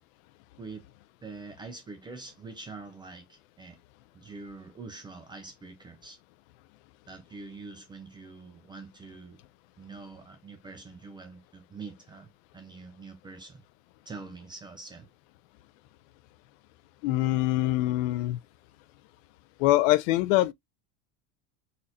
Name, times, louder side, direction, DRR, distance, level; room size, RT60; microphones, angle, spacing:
voice 1, 1.2-3.8 4.1-6.2 7.1-9.4 9.8-13.6 14.1-15.1, right 3 dB, 10° right, 0.3 m, -45 dB
voice 2, 17.0-18.4 19.6-20.5, left 16 dB, 60° left, 0.5 m, -24 dB
4.1 x 2.5 x 2.7 m
supercardioid pair, 145°, 44 cm